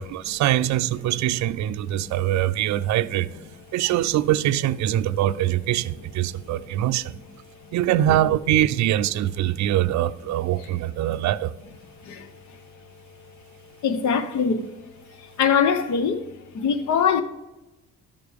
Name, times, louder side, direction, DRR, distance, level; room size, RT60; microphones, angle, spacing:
voice 1, 0.0-3.3 3.7-7.1 7.7-11.5, right 13 dB, 70° right, 0.5 m, -23 dB
voice 2, 13.8-14.7 15.4-16.3 16.5-17.2, left 6 dB, 75° left, 1.0 m, -22 dB
12.5 x 6.7 x 3.5 m
cardioid pair, 90°, 30 cm